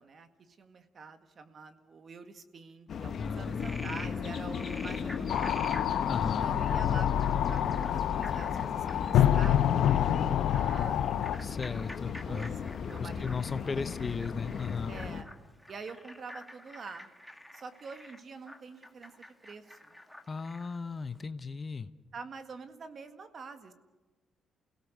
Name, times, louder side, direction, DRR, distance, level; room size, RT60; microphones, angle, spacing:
voice 1, 0.0-5.6 6.4-11.3 12.3-13.7 14.0-14.1 14.9-15.3 15.7-17.1 17.5-20.0 22.1-23.7, right 4 dB, 50° right, 8 dB, 1.9 m, -46 dB
sound 1, 2.9-15.2, left 6 dB, 60° left, 1.4 m, -36 dB
voice 2, 3.2-4.3 6.1-6.5 11.4-12.6 13.0-15.0 20.3-21.9, left 5 dB, 35° left, 12 dB, 0.9 m, -36 dB
Frog, 3.4-20.8, left 1 dB, ahead, 2.0 m, -49 dB
sound 2, 5.3-11.4, left 10 dB, 80° left, 0.8 m, -27 dB
28.5 x 17.5 x 6.7 m, 1.2 s
cardioid pair, 90°, 0 cm